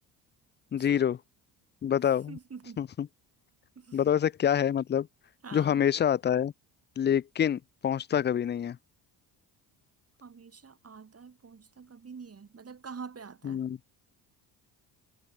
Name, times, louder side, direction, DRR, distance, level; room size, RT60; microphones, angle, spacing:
voice 1, 0.7-1.2 1.8-2.4 2.8-3.1 3.9-5.1 5.5-6.5 7.0-8.8 13.4-13.8, left 9 dB, 25° left, 0.4 m, -26 dB
voice 2, 2.3-2.8 3.8-4.0 5.4-5.8 10.2-13.6, right 5 dB, 35° right, 3.9 m, -46 dB
cardioid pair, 85°, 43 cm